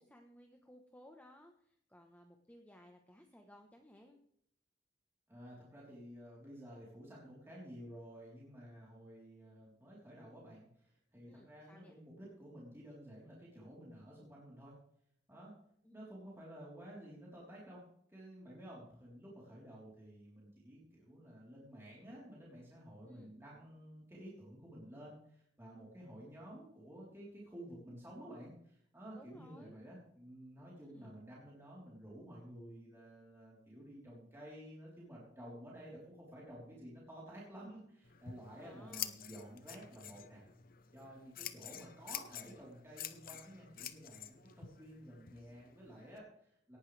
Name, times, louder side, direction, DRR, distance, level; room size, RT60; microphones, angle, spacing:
voice 1, 0.0-4.2 11.3-12.0 15.8-16.2 23.0-23.3 29.1-29.8 30.9-31.2 38.6-39.2, equal, 10° left, 3 dB, 1.1 m, -60 dB
voice 2, 5.3-14.7 15.3-15.5 15.9-17.8 18.1-40.4 40.9-46.8, equal, 15° right, -6 dB, 3.7 m, -52 dB
Scissors, 38.0-46.2, left 10 dB, 50° left, 0.9 m, -48 dB
18.0 x 11.0 x 3.4 m, 0.69 s
head